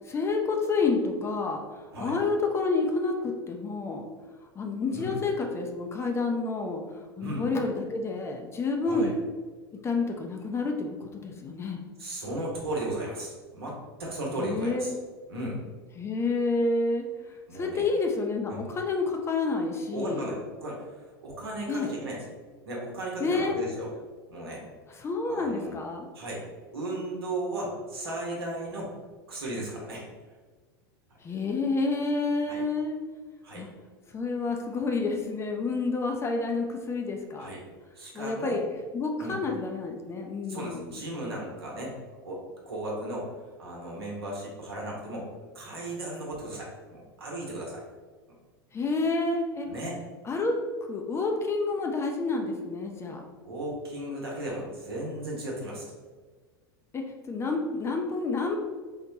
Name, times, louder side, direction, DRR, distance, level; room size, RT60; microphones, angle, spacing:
voice 1, 0.1-1.6 2.0-4.0 4.6-6.8 7.2-9.2 9.8-11.0 11.2-11.8 14.3-14.9 16.0-17.0 17.5-20.3 21.7-21.9 23.2-23.6 25.0-26.1 31.2-33.0 33.6-33.7 34.1-37.5 38.1-38.6 38.9-40.9 48.7-49.7 50.3-50.6 50.9-53.2 56.9-57.0 57.3-58.6, left 3 dB, 20° left, 3 dB, 0.4 m, -29 dB
voice 2, 12.0-14.9 15.3-15.6 17.5-17.9 18.5-18.6 19.9-22.2 22.6-23.9 24.3-24.6 25.3-25.8 26.1-26.5 26.7-28.9 29.3-30.1 32.5-32.6 33.4-33.7 37.4-37.7 37.9-38.6 39.2-39.4 40.5-41.9 42.2-42.4 42.7-43.3 43.6-45.3 45.5-47.8 49.7-50.0 53.4-55.9, right 1 dB, 80° right, -2 dB, 1.0 m, -35 dB
4.0 x 2.1 x 2.7 m, 1.4 s
hypercardioid pair, 90°, 13 cm